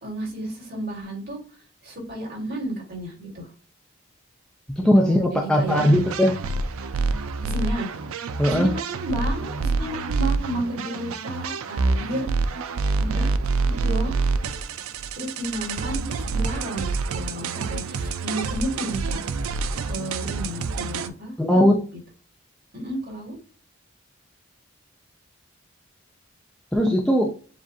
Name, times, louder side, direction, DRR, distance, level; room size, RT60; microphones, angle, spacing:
voice 1, 0.0-1.4 1.8-3.5 4.8-5.8 7.4-7.9 8.4-12.3 13.0-13.3 13.6-14.2 15.2-19.2 19.9-22.0 22.7-23.4, right 1 dB, 45° right, -1 dB, 2.3 m, -32 dB
voice 2, 4.8-6.4 8.4-8.8 21.4-21.8 26.7-27.3, equal, 5° left, 0 dB, 0.5 m, -19 dB
sound 1, 5.7-21.1, right 3 dB, 80° right, 0.4 m, -27 dB
7.3 x 2.5 x 2.7 m, 0.37 s
head